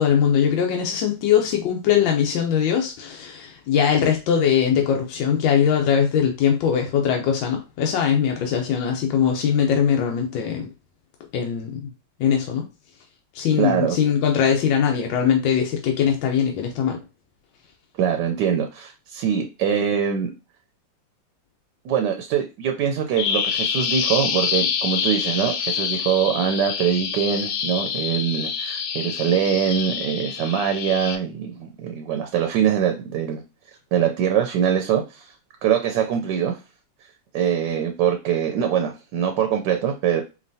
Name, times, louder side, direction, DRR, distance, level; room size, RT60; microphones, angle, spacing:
voice 1, 0.0-10.7 11.3-11.9 12.2-12.7 13.3-17.0, left 8 dB, 85° left, 1.4 m, -21 dB
voice 2, 13.6-14.0 18.0-20.3 21.8-33.4 33.9-35.3 35.6-36.6 37.3-40.2, right 8 dB, 75° right, 1.2 m, -23 dB
Bird vocalization bird call bird song, 23.2-31.2, left 7 dB, 70° left, 0.9 m, -26 dB
4.5 x 3.0 x 2.7 m
omnidirectional pair, 2.0 m